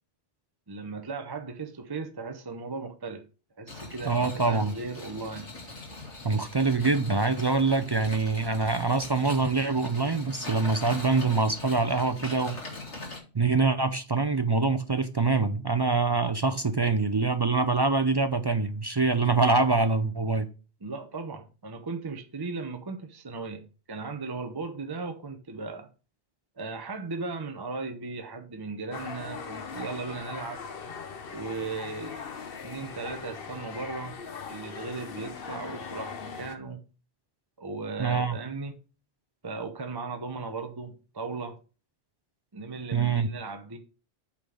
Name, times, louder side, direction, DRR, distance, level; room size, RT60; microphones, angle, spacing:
voice 1, 0.7-3.2 3.6-5.5 20.8-25.9 26.6-30.6 31.3-32.2 32.6-34.2 34.5-36.8 37.6-38.8 39.4-41.6 42.5-43.8, right 4 dB, 25° right, 0.7 m, -37 dB
sound 1, 3.7-13.2, left 2 dB, 70° left, 2.5 m, -41 dB
voice 2, 4.1-4.7 6.2-12.6 13.3-20.5 38.0-38.4 42.9-43.3, right 3 dB, 45° right, 0.3 m, -25 dB
sound 2, 28.9-36.6, left 6 dB, 55° left, 1.0 m, -40 dB
8.4 x 3.9 x 6.2 m
omnidirectional pair, 1.2 m